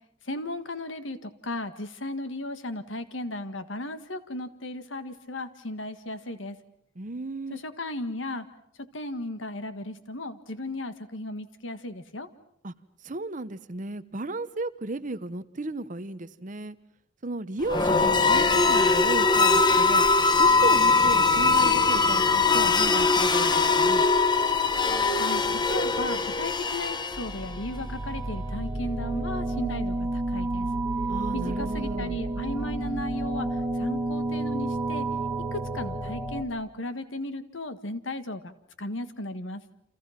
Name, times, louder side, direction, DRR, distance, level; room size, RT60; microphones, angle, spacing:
voice 1, 0.3-6.6 7.5-8.5 8.9-12.3 25.1-25.4 25.7-30.7 31.3-35.1 35.5-39.6, left 2 dB, 80° left, 10 dB, 1.8 m, -35 dB
voice 2, 7.0-7.6 12.6-12.7 13.0-16.8 17.2-20.0 20.4-24.0 31.1-32.2, right 2 dB, 40° right, 13 dB, 1.0 m, -34 dB
sound 1, 17.6-27.6, left 4 dB, 25° left, 1.2 m, -21 dB
sound 2, 27.1-36.4, right 2 dB, 20° right, 2.5 m, -30 dB
29.5 x 27.5 x 5.9 m, 0.69 s
head